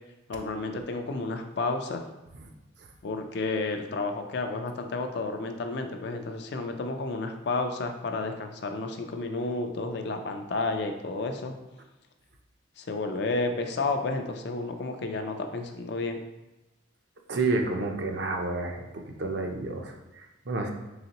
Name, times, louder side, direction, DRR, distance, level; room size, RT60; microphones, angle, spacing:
voice 1, 0.3-2.1 3.0-11.6 12.8-16.2, left 3 dB, 60° left, 6 dB, 0.4 m, -31 dB
voice 2, 17.3-18.8 19.2-20.7, right 3 dB, 60° right, 2 dB, 0.6 m, -30 dB
3.9 x 3.5 x 2.9 m, 1.0 s
head